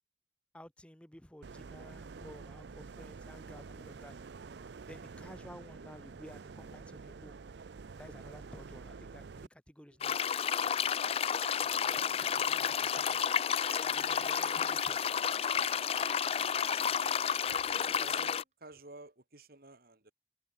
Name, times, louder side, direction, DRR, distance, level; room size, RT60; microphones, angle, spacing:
voice 1, 0.5-4.1 4.9-7.4 8.0-10.2 11.6-13.3 13.8-15.0, equal, 5° left, 1.2 m, -53 dB
sound 1, 1.4-9.5, right 4 dB, 75° right, 0.5 m, -48 dB
sound 2, 10.0-18.4, left 8 dB, 35° left, 0.4 m, -31 dB
sound 3, 13.5-18.2, right 6 dB, 40° right, 6.8 m, -56 dB
voice 2, 17.4-20.1, right 3 dB, 55° right, 2.7 m, -52 dB
head